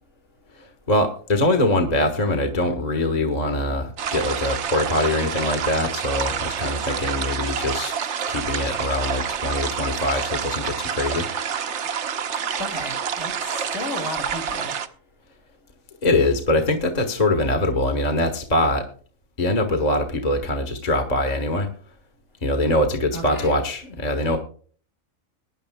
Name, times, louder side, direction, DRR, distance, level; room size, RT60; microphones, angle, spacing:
voice 1, 0.6-7.9 8.3-11.3 16.0-18.9 19.4-21.7 22.4-24.4, left 1 dB, 30° left, 3 dB, 1.4 m, -23 dB
sound 1, 4.0-14.9, right 7 dB, 60° right, 1.1 m, -28 dB
voice 2, 12.6-14.7 23.1-23.6, left 1 dB, 55° left, 2 dB, 2.5 m, -33 dB
22.0 x 10.5 x 2.2 m, 0.44 s
omnidirectional pair, 1.4 m